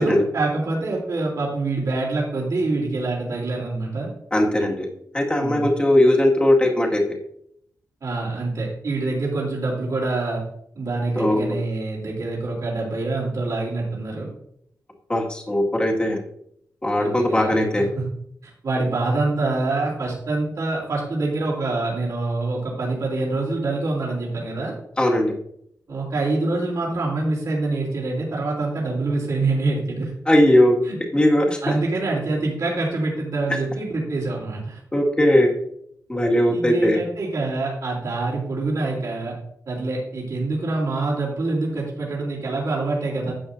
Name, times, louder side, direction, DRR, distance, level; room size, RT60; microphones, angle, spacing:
voice 1, 0.0-4.1 5.4-5.7 8.0-10.4 10.7-14.3 17.0-17.6 18.4-24.7 25.9-30.1 30.8-31.0 31.6-34.8 36.5-39.3 39.7-43.3, right 2 dB, 65° right, -4 dB, 3.3 m, -25 dB
voice 2, 4.3-4.9 5.1-7.0 11.2-11.6 15.1-16.2 16.8-17.9 25.0-25.3 30.3-30.8 31.1-31.8 34.9-35.6 36.1-37.0, left 1 dB, 15° left, -1 dB, 1.9 m, -19 dB
12.5 x 8.2 x 2.7 m, 0.73 s
wide cardioid pair, 125°, 6 cm